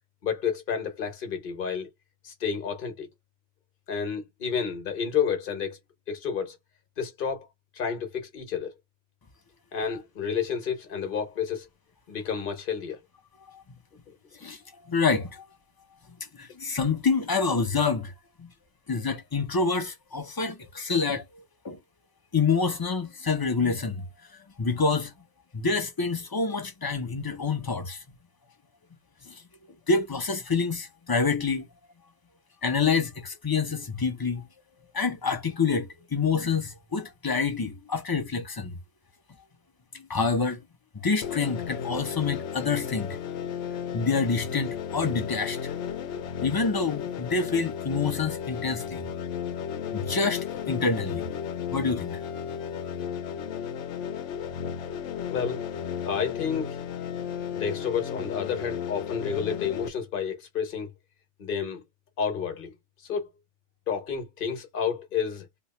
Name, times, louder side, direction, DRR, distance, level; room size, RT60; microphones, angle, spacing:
voice 1, 0.2-1.9 2.2-3.1 3.9-5.8 6.1-6.6 7.0-7.5 7.7-8.7 9.7-11.7 12.1-13.0 14.1-14.2 55.3-55.6 56.0-56.8 57.5-60.9 61.4-61.8 62.2-62.7 63.0-63.3 63.9-65.5, left 7 dB, 50° left, 1.2 m, -30 dB
voice 2, 14.9-15.4 16.4-18.1 18.4-18.5 18.9-21.2 21.6-21.8 22.3-24.0 24.6-25.1 25.5-28.0 29.3-29.4 29.9-31.7 32.6-34.4 34.9-38.7 39.9-40.6 41.0-43.2 43.9-45.6 46.4-49.0 49.9-51.3 51.7-52.2, left 4 dB, 25° left, 0.6 m, -27 dB
sound 1, 41.2-59.9, left 8 dB, 80° left, 0.9 m, -34 dB
3.0 x 2.3 x 4.1 m
omnidirectional pair, 1.2 m